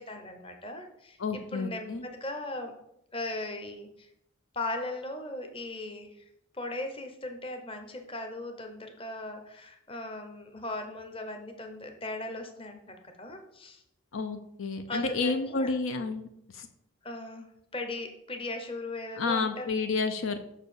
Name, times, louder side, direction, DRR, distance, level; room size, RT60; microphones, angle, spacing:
voice 1, 0.0-2.7 3.1-4.1 4.5-6.3 6.5-13.8 14.9-15.7 17.0-17.5 17.7-19.7, left 2 dB, 25° left, 5 dB, 0.9 m, -38 dB
voice 2, 1.2-2.0 14.1-16.3 16.5-16.7 19.2-20.4, left 4 dB, 70° left, 8 dB, 0.6 m, -30 dB
5.9 x 4.8 x 6.6 m, 0.77 s
head